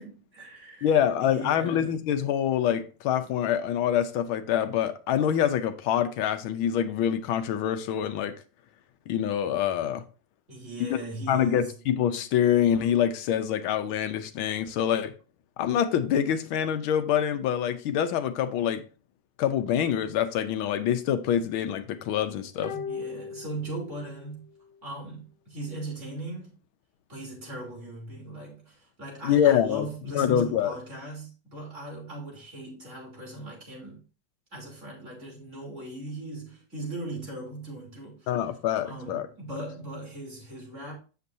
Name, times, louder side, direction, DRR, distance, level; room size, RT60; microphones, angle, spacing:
voice 1, 0.0-1.9 10.5-11.8 22.7-24.5 24.8-26.6 27.1-34.0 34.5-38.3 38.8-41.0, right 1 dB, 35° right, 3.2 m, -39 dB
voice 2, 0.8-8.3 9.1-10.0 11.3-15.1 15.6-18.8 19.4-22.7 29.2-29.9 30.1-30.7 38.3-39.3, left 9 dB, 90° left, 1.6 m, -25 dB
sound 1, 22.6-24.3 24.6-24.7, left 5 dB, 50° left, 0.5 m, -38 dB
8.1 x 6.9 x 2.7 m
omnidirectional pair, 2.2 m